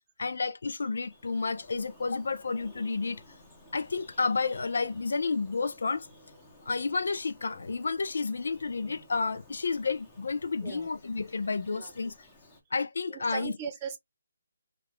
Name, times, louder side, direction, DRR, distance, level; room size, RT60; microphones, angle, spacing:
voice 1, 0.2-3.2 3.7-6.1 6.7-12.1 12.7-13.6, left 4 dB, 70° left, 0.4 m, -31 dB
Bird vocalization bird call bird song, 0.6-12.6, left 1 dB, 15° left, 0.9 m, -56 dB
voice 2, 13.1-14.0, right 6 dB, 25° right, 0.7 m, -38 dB
2.3 x 2.3 x 3.4 m
hypercardioid pair, 155°, 0 cm